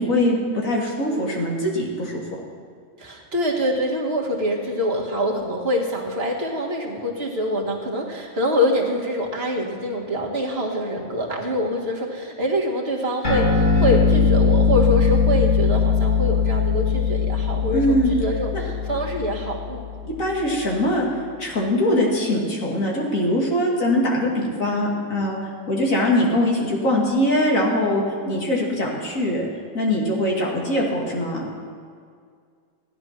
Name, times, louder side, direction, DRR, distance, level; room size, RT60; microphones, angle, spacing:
voice 1, 0.0-2.2 17.7-18.1 18.5-18.6 20.2-21.1 21.4-29.5 29.7-31.4, left 1 dB, 85° left, -2 dB, 2.9 m, -22 dB
voice 2, 3.0-20.1, equal, 50° right, -1 dB, 2.0 m, -25 dB
sound 1, 13.2-20.1, left 5 dB, 55° left, 3.4 m, -20 dB
15.5 x 11.0 x 6.0 m, 2.1 s
omnidirectional pair, 1.4 m